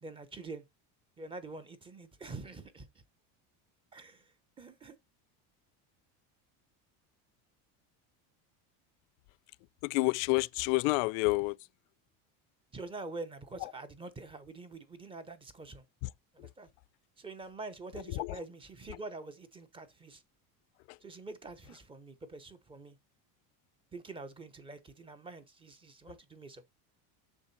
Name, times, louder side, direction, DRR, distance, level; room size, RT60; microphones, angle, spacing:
voice 1, 0.0-0.6 1.2-3.0 3.9-4.3 4.6-4.9 12.7-15.8 16.3-16.7 17.2-20.2 21.0-23.0 23.9-26.7, right 3 dB, 15° right, 0.9 m, -46 dB
voice 2, 9.8-11.6 13.6-13.7 16.0-16.1 16.4-16.5 18.1-18.4 18.9-19.0 20.9-21.0, left 27 dB, 75° left, 0.5 m, -30 dB
7.4 x 6.3 x 4.2 m
cardioid pair, 175°, 40 cm